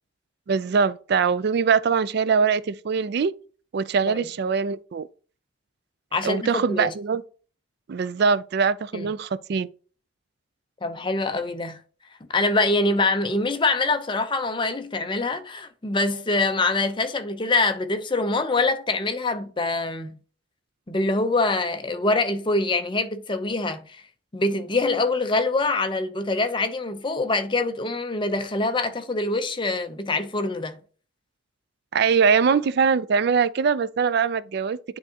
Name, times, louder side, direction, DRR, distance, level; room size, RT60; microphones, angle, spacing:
voice 1, 0.5-3.3 3.7-5.1 6.2-7.2 7.9-9.7 31.9-35.0, right 6 dB, 55° right, 0.3 m, -22 dB
voice 2, 6.1-6.9 8.9-9.1 10.8-11.8 12.3-20.2 20.9-24.0 24.3-30.8, left 2 dB, 25° left, 0.6 m, -24 dB
9.8 x 3.6 x 2.8 m
head